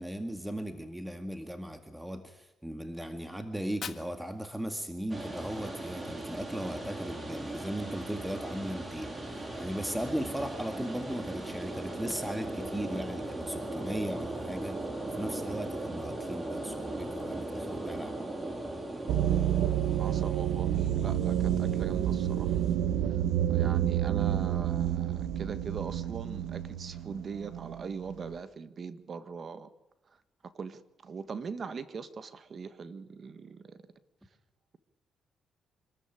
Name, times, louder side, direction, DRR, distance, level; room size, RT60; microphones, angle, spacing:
voice 1, 0.0-14.8 15.1-18.2, right 1 dB, 5° right, 7 dB, 1.9 m, -37 dB
Fire, 3.5-5.5, left 7 dB, 50° left, 1.6 m, -46 dB
sound 1, 5.1-22.7, right 2 dB, 25° right, 4.0 m, -39 dB
sound 2, 19.1-28.4, right 11 dB, 85° right, 1.1 m, -29 dB
voice 2, 20.0-22.6 23.1-23.2 23.5-29.7 30.5-33.8, right 5 dB, 45° right, 13 dB, 1.4 m, -41 dB
26.0 x 13.5 x 9.2 m, 0.99 s
cardioid pair, 90°, 0 cm